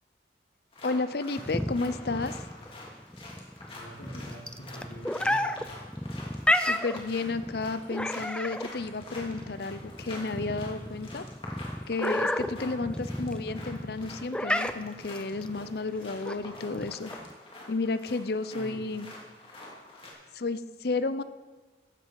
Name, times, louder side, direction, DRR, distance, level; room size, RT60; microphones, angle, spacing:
sound 1, 0.7-20.1, left 2 dB, 30° left, 2.8 m, -47 dB
voice 1, 0.8-2.4 6.5-11.2 11.9-17.1 17.7-19.1 20.3-21.2, left 3 dB, 60° left, 13 dB, 0.6 m, -32 dB
sound 2, 1.4-17.3, left 1 dB, 5° left, 0.4 m, -32 dB
voice 2, 3.7-5.4 18.5-18.8, equal, 80° left, -6 dB, 2.9 m, -45 dB
14.5 x 11.5 x 4.7 m, 1.3 s
head